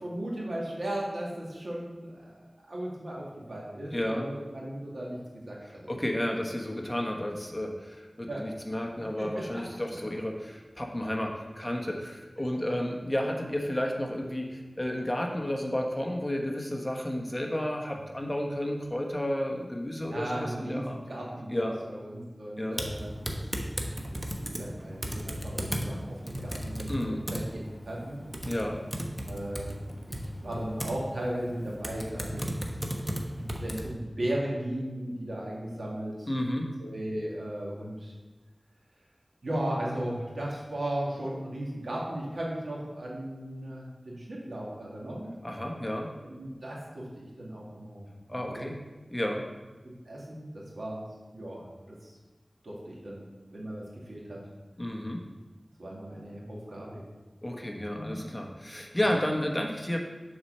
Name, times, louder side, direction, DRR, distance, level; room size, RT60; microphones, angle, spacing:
voice 1, 0.0-5.2 5.5-5.9 8.3-8.5 9.2-9.4 20.1-23.1 23.9-27.4 27.9-28.2 29.3-29.8 30.1-32.5 33.3-36.3 36.8-38.1 39.4-45.3 46.2-48.8 50.1-51.0 51.3-52.1 52.6-53.2 53.5-54.4 55.8-57.0 57.9-58.2 59.0-59.2, right 1 dB, 90° right, -4 dB, 2.0 m, -36 dB
voice 2, 3.9-4.2 5.6-21.0 21.5-21.8 22.6-22.8 26.9-27.2 28.4-28.8 36.3-36.7 45.4-46.1 48.3-48.8 49.1-49.4 54.8-55.2 57.4-60.0, left 1 dB, 20° left, 1 dB, 1.2 m, -32 dB
Typing, 22.7-33.9, equal, 15° right, 1.0 m, -36 dB
6.7 x 4.3 x 6.6 m, 1.2 s
wide cardioid pair, 40°, 0 cm